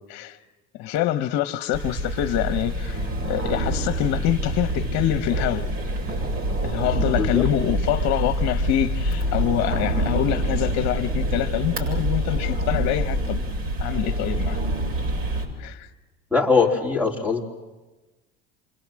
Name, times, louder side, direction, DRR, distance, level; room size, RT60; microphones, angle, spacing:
voice 1, 0.8-5.7 6.6-13.4 13.8-14.6 15.6-15.9, left 13 dB, 60° left, 1.2 m, -25 dB
sound 1, 1.7-15.5, right 1 dB, 45° right, 7.8 m, -26 dB
voice 2, 16.3-17.4, left 4 dB, 5° right, 3.9 m, -21 dB
28.5 x 25.0 x 7.7 m
supercardioid pair, 95°, 31 cm